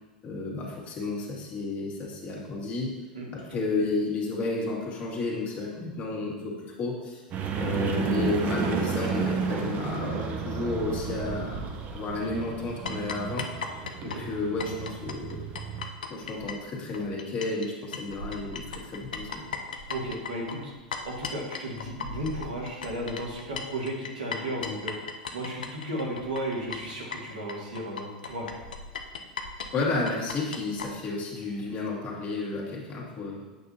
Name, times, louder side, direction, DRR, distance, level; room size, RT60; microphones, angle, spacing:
voice 1, 0.2-3.0 3.3-7.2 7.6-11.6 11.9-13.5 14.0-15.5 16.1-19.4 29.7-33.4, left 3 dB, 40° left, -3 dB, 2.1 m, -32 dB
voice 2, 3.1-3.6 14.0-14.2 19.9-20.7 21.0-28.6, right 1 dB, 85° right, -4 dB, 2.1 m, -34 dB
sound 1, 7.3-15.9, right 5 dB, 40° right, 0.8 m, -32 dB
sound 2, 12.9-17.7 17.9-30.9, left 5 dB, 80° left, 0.6 m, -37 dB
8.6 x 6.1 x 2.8 m, 1.1 s
hypercardioid pair, 90°, 4 cm